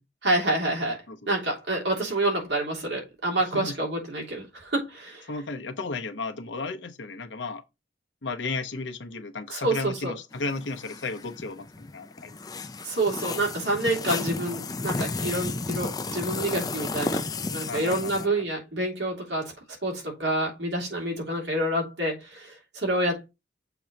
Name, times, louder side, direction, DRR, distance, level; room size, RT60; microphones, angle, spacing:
voice 1, 0.2-1.0 1.3-5.2 9.5-10.1 12.8-17.2 17.5-19.5 19.8-23.3, right 1 dB, 70° right, 3.0 m, -28 dB
voice 2, 5.3-7.6 8.2-12.4 17.7-18.3, left 3 dB, 80° left, 1.0 m, -34 dB
sound 1, 10.3-18.3, left 3 dB, 20° left, 0.4 m, -33 dB
7.0 x 3.0 x 5.1 m
head